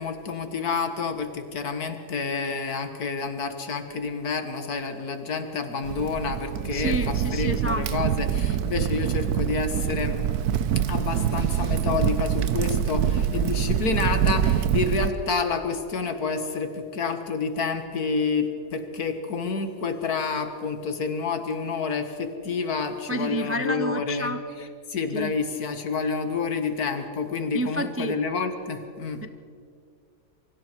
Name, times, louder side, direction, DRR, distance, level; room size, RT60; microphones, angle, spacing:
voice 1, 0.0-10.2 10.9-24.3 24.6-29.3, left 4 dB, 75° left, 7 dB, 2.1 m, -29 dB
Crackle, 5.8-15.1, right 9 dB, 85° right, 1.3 m, -25 dB
voice 2, 6.7-8.1 23.1-24.4 25.1-25.3 27.5-28.2 29.2-29.3, right 1 dB, 20° right, 9 dB, 0.3 m, -30 dB
27.5 x 24.0 x 4.6 m, 2.2 s
omnidirectional pair, 1.6 m